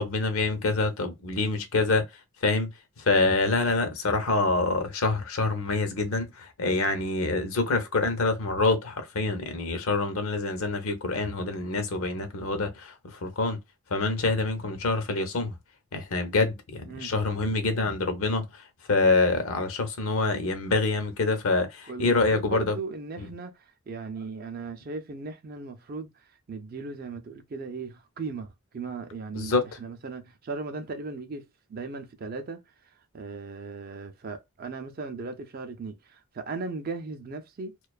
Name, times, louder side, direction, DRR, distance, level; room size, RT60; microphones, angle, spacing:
voice 1, 0.0-2.0 2.4-13.6 13.9-15.6 15.9-22.8 23.2-23.3 29.3-29.6, left 3 dB, 75° left, 0.6 m, -26 dB
voice 2, 21.9-32.6 33.1-37.8, right 4 dB, 45° right, 0.4 m, -37 dB
2.5 x 2.2 x 2.2 m
head